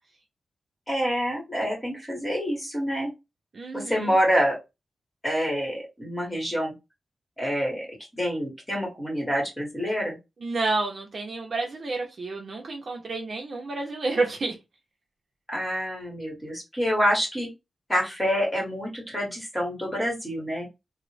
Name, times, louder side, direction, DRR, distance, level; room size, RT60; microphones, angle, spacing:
voice 1, 0.9-3.1 3.7-4.6 5.2-6.7 7.4-7.9 8.1-10.2 15.5-17.5 17.9-20.7, equal, 10° left, 1.1 m, -27 dB
voice 2, 3.5-4.1 10.4-14.6, right 3 dB, 50° right, 0.7 m, -29 dB
3.9 x 2.0 x 3.1 m
wide cardioid pair, 175°, 0 cm